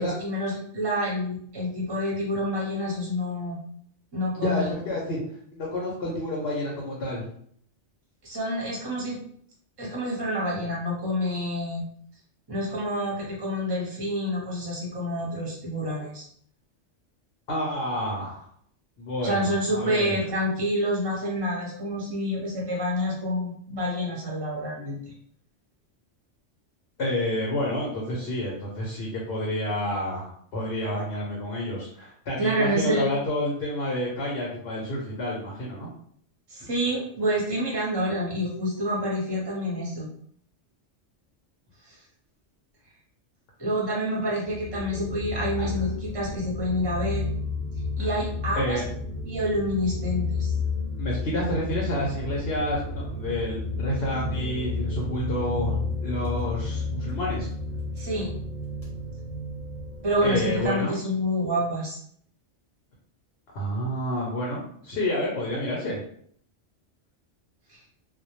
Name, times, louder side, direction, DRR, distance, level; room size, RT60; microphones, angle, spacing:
voice 1, 0.0-3.6 4.1-4.8 8.2-9.2 9.8-11.8 12.5-16.2 19.2-25.1 32.4-33.1 36.5-40.1 41.9-42.0 43.6-47.2 48.0-48.8 49.2-50.5 58.0-58.3 60.0-62.0 67.7-67.8, equal, 25° right, -3 dB, 0.6 m, -28 dB
voice 2, 4.3-5.2 5.5-7.2 17.5-18.5 19.0-20.2 27.0-35.9 45.5-45.7 48.0-48.1 48.5-48.8 51.0-57.5 60.2-60.9 63.5-66.0, left 1 dB, 65° left, -3 dB, 0.8 m, -29 dB
sound 1, 44.4-60.7, left 3 dB, 35° left, 0.8 m, -31 dB
2.2 x 2.0 x 2.9 m, 0.63 s
omnidirectional pair, 1.2 m